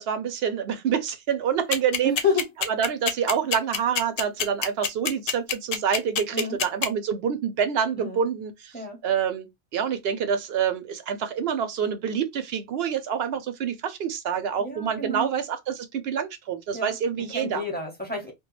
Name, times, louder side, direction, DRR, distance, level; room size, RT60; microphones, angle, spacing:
voice 1, 0.0-2.1 2.7-8.7 9.0-9.5 9.7-17.6, right 7 dB, 65° right, 0.7 m, -27 dB
sound 1, 1.7-6.9, left 8 dB, 65° left, 0.7 m, -25 dB
voice 2, 2.0-2.5 6.3-6.6 8.0-8.2 8.7-9.0 14.6-15.3 16.7-17.0 17.3-18.3, left 3 dB, 10° left, 0.7 m, -29 dB
2.2 x 2.2 x 3.0 m
omnidirectional pair, 1.2 m